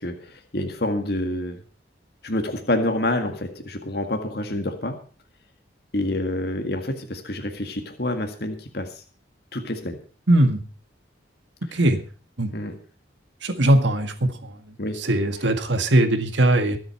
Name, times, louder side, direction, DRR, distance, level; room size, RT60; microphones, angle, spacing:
voice 1, 0.0-1.6 2.2-5.0 5.9-9.0 9.5-10.0 11.7-11.8 12.5-12.8 14.8-15.0, left 1 dB, 55° left, 5 dB, 1.9 m, -27 dB
voice 2, 10.3-10.6 11.7-12.0 12.4-12.5 13.4-14.5 15.0-16.8, right 1 dB, 75° right, 8 dB, 1.8 m, -20 dB
24.0 x 8.0 x 4.4 m, 0.38 s
head